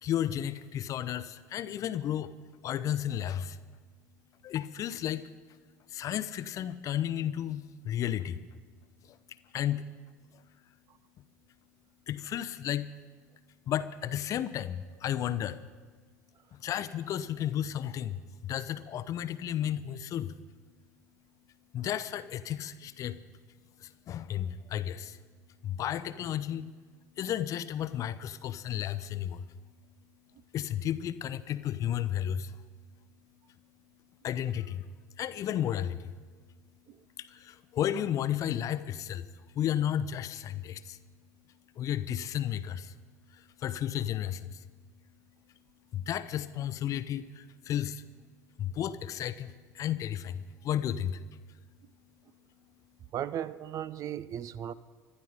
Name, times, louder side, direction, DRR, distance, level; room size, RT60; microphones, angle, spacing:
voice 1, 0.0-2.3 2.6-3.6 4.4-5.2 5.9-8.4 9.5-9.8 12.1-12.9 13.7-15.6 16.5-20.3 21.7-23.2 23.8-25.2 25.6-26.7 27.2-29.4 30.5-32.5 34.2-34.9 35.2-36.1 37.2-39.3 39.5-41.0 41.8-42.9 43.3-44.6 45.9-48.0 48.6-51.2, left 10 dB, 40° left, 0.7 m, -33 dB
voice 2, 53.1-54.7, right 10 dB, 40° right, 0.6 m, -36 dB
25.0 x 12.0 x 4.0 m
figure-of-eight pair, 65°, 9 cm